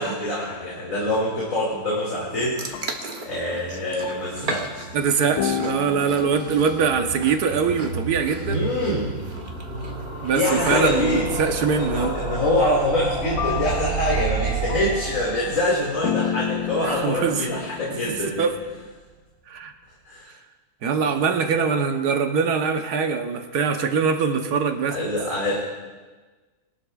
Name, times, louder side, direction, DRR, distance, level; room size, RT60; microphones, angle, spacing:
voice 1, 0.0-2.8 3.2-4.9 8.5-9.2 10.3-11.3 11.8-18.5 20.0-20.3 21.0-21.1 24.9-25.7, left 1 dB, 60° left, -6 dB, 2.7 m, -25 dB
sound 1, 2.5-5.0 5.4-8.5 10.7-18.9, left 9 dB, 80° left, 1.1 m, -32 dB
sound 2, 2.6-12.2, right 3 dB, 35° right, 1.1 m, -38 dB
sound 3, 4.6-17.6 17.9-18.0 18.2-18.3 18.5-18.6, right 4 dB, 65° right, 2.2 m, -32 dB
voice 2, 4.9-8.7 10.2-12.2 16.8-17.5 18.0-18.6 19.5-19.7 20.8-25.0, right 6 dB, 90° right, 5 dB, 1.5 m, -23 dB
21.5 x 12.0 x 2.4 m, 1.3 s
omnidirectional pair, 1.6 m